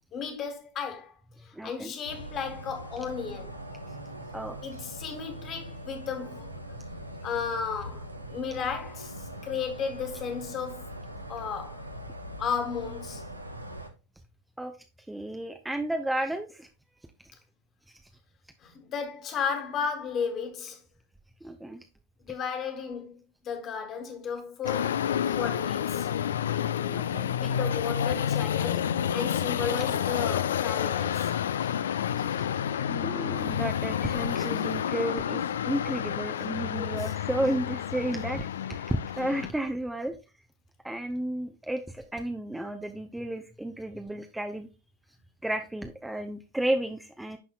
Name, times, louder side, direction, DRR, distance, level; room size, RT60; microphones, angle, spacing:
voice 1, 0.1-1.1 1.4-3.6 4.6-6.5 7.2-10.9 11.3-11.8 12.4-13.3 18.6-20.8 22.3-23.1 23.4-25.0 25.3-26.1 27.3-31.3 36.7-37.1, left 6 dB, 30° left, 1.7 m, -34 dB
voice 2, 1.5-1.9 4.3-4.6 14.6-14.7 15.1-16.7 21.4-21.8 25.3-25.4 26.9-27.3 32.2-32.5 32.9-35.4 35.7-40.2 40.8-44.7 45.4-47.4, right 1 dB, 5° right, 0.6 m, -32 dB
sound 1, 2.0-13.9, right 1 dB, 85° right, 0.9 m, -41 dB
sound 2, 24.6-39.5, left 9 dB, 65° left, 0.3 m, -29 dB
11.5 x 4.2 x 2.4 m
figure-of-eight pair, 90°, 0 cm